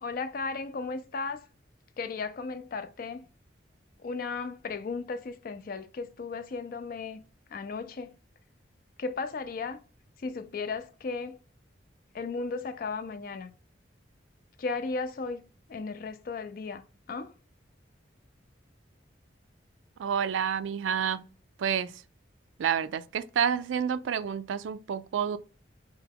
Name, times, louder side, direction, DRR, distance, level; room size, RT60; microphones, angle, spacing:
voice 1, 0.0-1.5 2.0-3.3 4.0-7.2 7.5-8.2 9.0-9.8 10.2-11.4 12.1-13.5 14.6-16.8 17.1-17.3, left 4 dB, 50° left, 0.4 m, -35 dB
voice 2, 20.0-21.2 21.6-21.9 22.6-25.4, right 8 dB, 80° right, 0.3 m, -29 dB
4.6 x 2.2 x 3.4 m
head